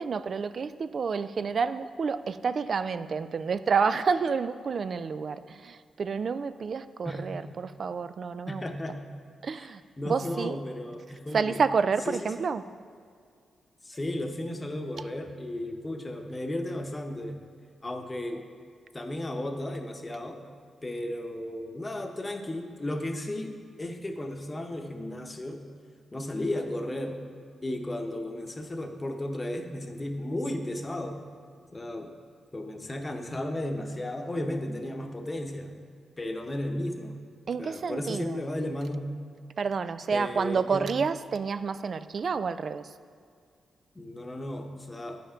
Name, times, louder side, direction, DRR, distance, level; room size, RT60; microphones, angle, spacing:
voice 1, 0.0-8.7 9.4-9.8 10.1-10.6 11.3-12.6 37.5-38.4 39.6-42.9, right 5 dB, 55° right, 13 dB, 0.3 m, -29 dB
voice 2, 8.5-9.0 9.6-9.7 10.0-11.6 12.1-12.3 13.8-17.4 17.8-18.5 18.9-20.4 20.8-25.7 26.1-27.2 27.6-31.2 31.7-32.1 32.5-35.8 36.2-37.2 37.6-39.0 40.1-40.9 43.9-45.2, left 1 dB, 25° left, 4 dB, 0.9 m, -34 dB
8.5 x 5.6 x 5.0 m, 2.2 s
cardioid pair, 75°, 0 cm